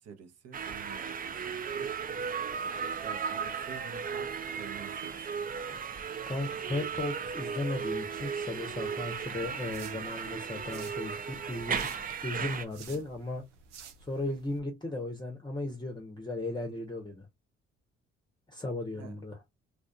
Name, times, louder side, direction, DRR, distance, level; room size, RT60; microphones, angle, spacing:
voice 1, 0.0-1.9 3.0-5.4 12.8-13.0 18.9-19.2, right 6 dB, 45° right, 0.8 m, -48 dB
sound 1, 0.5-12.6, right 6 dB, 25° right, 0.5 m, -36 dB
voice 2, 6.3-11.9 12.2-13.4 14.1-17.3 18.5-19.4, left 2 dB, 15° left, 0.8 m, -36 dB
sound 2, 8.7-14.6, right 6 dB, 85° right, 0.5 m, -53 dB
2.4 x 2.4 x 2.3 m
hypercardioid pair, 50°, 35 cm